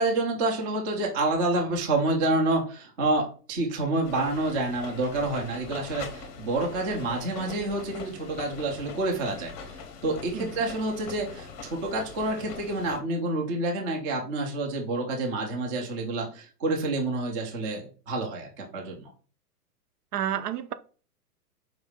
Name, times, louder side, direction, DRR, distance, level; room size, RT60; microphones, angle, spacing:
voice 1, 0.0-9.5 10.0-19.1, right 2 dB, 15° right, 0.3 m, -28 dB
sound 1, 4.0-13.0, left 5 dB, 30° left, 0.6 m, -42 dB
voice 2, 20.1-20.7, right 10 dB, 75° right, 0.7 m, -30 dB
4.8 x 2.6 x 3.4 m
hypercardioid pair, 120°, 47 cm